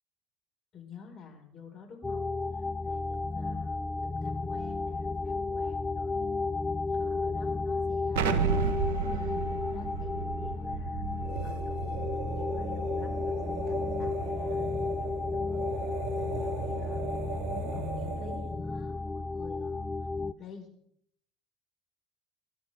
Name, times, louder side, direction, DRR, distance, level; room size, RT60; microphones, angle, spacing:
voice 1, 0.7-6.4 6.9-8.6 9.0-15.6 16.4-20.1 20.4-20.7, left 5 dB, 50° left, 1 dB, 6.2 m, -50 dB
sound 1, 2.0-20.3, left 3 dB, 15° left, 0.6 m, -33 dB
Explosion, 8.1-12.8, right 7 dB, 75° right, 1.6 m, -32 dB
sound 2, 11.2-18.6, right 6 dB, 55° right, 7.7 m, -38 dB
24.5 x 12.5 x 3.9 m, 0.67 s
hypercardioid pair, 70°, 0 cm